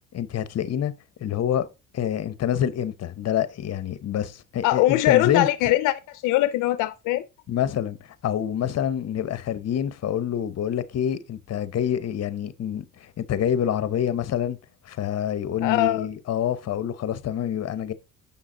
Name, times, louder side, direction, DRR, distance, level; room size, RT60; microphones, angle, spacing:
voice 1, 0.1-0.9 1.2-1.7 1.9-5.5 7.5-8.0 8.2-14.6 14.9-17.9, left 9 dB, 55° left, 0.9 m, -27 dB
voice 2, 4.6-7.2 15.6-16.1, left 15 dB, 90° left, 0.5 m, -22 dB
7.2 x 5.7 x 3.7 m
cardioid pair, 90°, 30 cm